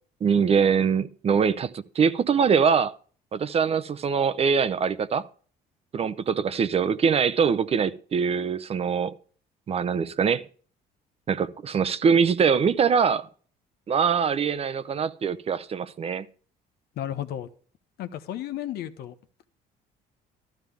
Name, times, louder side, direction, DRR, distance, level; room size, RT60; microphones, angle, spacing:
voice 1, 0.2-2.9 3.3-5.2 5.9-9.1 9.7-10.5 11.3-13.3 13.9-16.3, right 6 dB, 35° right, 0.6 m, -23 dB
voice 2, 17.0-17.5 18.0-19.1, left 11 dB, 75° left, 1.1 m, -33 dB
13.0 x 12.5 x 3.5 m
cardioid pair, 110°, 17 cm